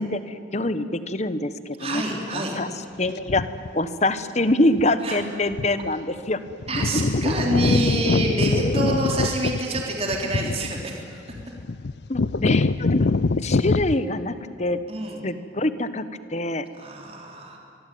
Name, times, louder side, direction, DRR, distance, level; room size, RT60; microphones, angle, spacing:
voice 1, 0.0-2.0 2.3-2.7 3.0-3.5 3.7-6.4 6.8-6.9 7.2-7.4 12.1-13.1 13.4-14.8 15.2-16.0 16.3-16.6, left 2 dB, 35° left, 12 dB, 1.2 m, -25 dB
voice 2, 1.8-2.6 5.0-5.2 6.7-10.9 14.9-15.2 16.8-17.6, right 1 dB, 30° right, 0 dB, 3.7 m, -27 dB
sound 1, 3.3-3.7 4.8-4.9 5.5-5.9 6.2-6.3 6.5-13.9, left 3 dB, 60° left, 0.6 m, -24 dB
24.5 x 22.5 x 9.4 m, 2.4 s
head